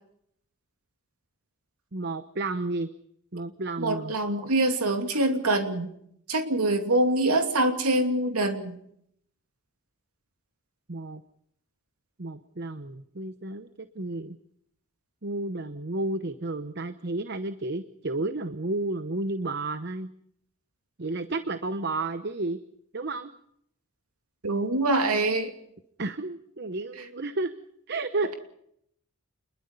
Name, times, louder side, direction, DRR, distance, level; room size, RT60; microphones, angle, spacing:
voice 1, 1.9-2.9 3.3-4.1 10.9-11.2 12.2-14.4 15.2-20.1 21.0-22.6 22.9-23.3 26.0-27.5 27.9-28.3, right 2 dB, 50° right, 11 dB, 0.9 m, -32 dB
voice 2, 3.8-5.9 6.3-8.8 24.4-25.5, right 2 dB, 90° right, 6 dB, 2.7 m, -25 dB
27.5 x 21.5 x 5.6 m, 0.71 s
head